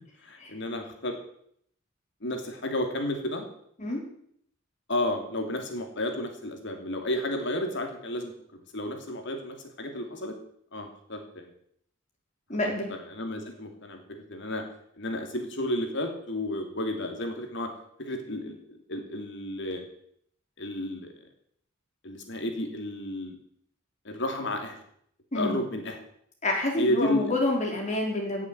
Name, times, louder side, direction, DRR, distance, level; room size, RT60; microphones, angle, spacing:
voice 1, 0.2-1.2 2.2-3.5 4.9-10.4 10.7-11.5 12.6-14.6 15.0-17.7 18.0-19.8 20.6-21.1 22.0-23.4 24.0-24.8 25.3-26.0 26.8-27.4, left 1 dB, 60° left, 5 dB, 2.9 m, -32 dB
voice 2, 12.5-12.9 25.3-25.6 26.4-28.5, left 2 dB, 35° left, 0 dB, 4.4 m, -28 dB
16.5 x 7.6 x 8.2 m, 0.68 s
head